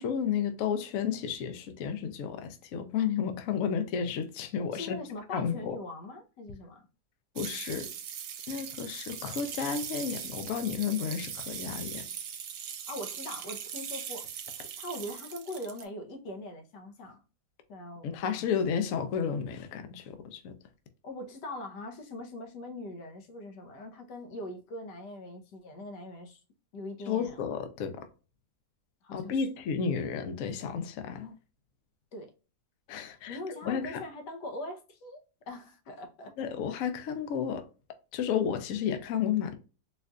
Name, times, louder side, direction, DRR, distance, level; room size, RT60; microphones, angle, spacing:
voice 1, 0.0-5.0 5.3-5.8 7.3-7.9 8.5-12.0 18.0-20.5 27.1-28.1 29.1-31.3 32.9-34.0 36.4-37.7 38.1-39.6, left 7 dB, 65° left, 0.9 m, -32 dB
voice 2, 4.7-6.9 12.9-14.3 14.6-17.2 17.7-18.4 21.0-26.4 26.7-27.4 29.0-29.5 32.1-32.3 33.1-35.2 35.5-36.3, left 1 dB, 90° left, 1.4 m, -41 dB
sound 1, 7.4-15.8, right 8 dB, 75° right, 1.1 m, -40 dB
4.3 x 2.5 x 2.3 m
omnidirectional pair, 1.8 m